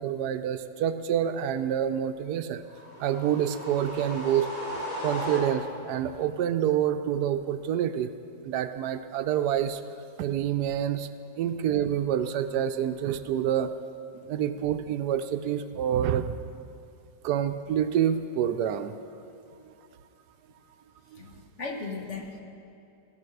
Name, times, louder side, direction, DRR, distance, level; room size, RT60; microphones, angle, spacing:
voice 1, 0.0-2.6 3.0-4.5 5.0-8.1 8.4-9.8 10.2-11.1 11.4-13.7 14.3-16.3 17.2-18.9 19.6-19.7 21.1-21.2, right 10 dB, 85° right, 10 dB, 1.1 m, -27 dB
sound 1, 2.7-5.9, equal, 35° left, 2.5 m, -36 dB
voice 2, 21.1-22.4, left 4 dB, 50° left, 2 dB, 1.3 m, -38 dB
17.5 x 6.2 x 6.5 m, 2.6 s
omnidirectional pair, 1.7 m